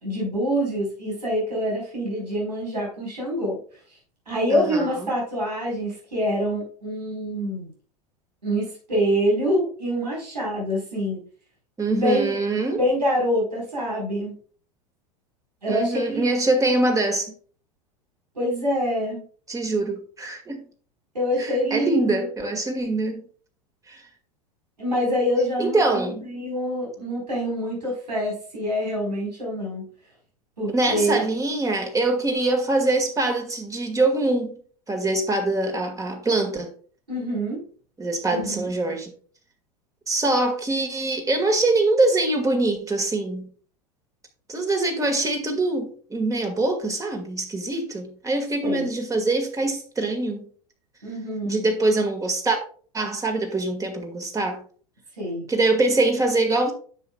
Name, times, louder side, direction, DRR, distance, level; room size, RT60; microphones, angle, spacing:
voice 1, 0.0-3.6 4.3-7.7 8.4-11.2 11.9-12.3 12.8-14.4 15.6-16.3 18.3-19.2 21.1-22.3 24.8-29.9 30.6-31.2 37.1-37.6 38.3-38.7 48.6-48.9 51.0-51.6 55.2-55.4, equal, 85° right, 4.4 m, -26 dB
voice 2, 4.5-5.1 11.8-12.8 15.7-17.3 19.5-20.6 21.4-23.2 23.9-24.0 25.6-26.2 30.7-34.6 34.9-36.7 38.0-39.1 40.1-43.5 44.5-50.4 51.4-52.6 52.9-54.6 55.5-56.7, right 2 dB, 15° right, 1.9 m, -24 dB
10.0 x 7.2 x 2.3 m
figure-of-eight pair, 90°, 21 cm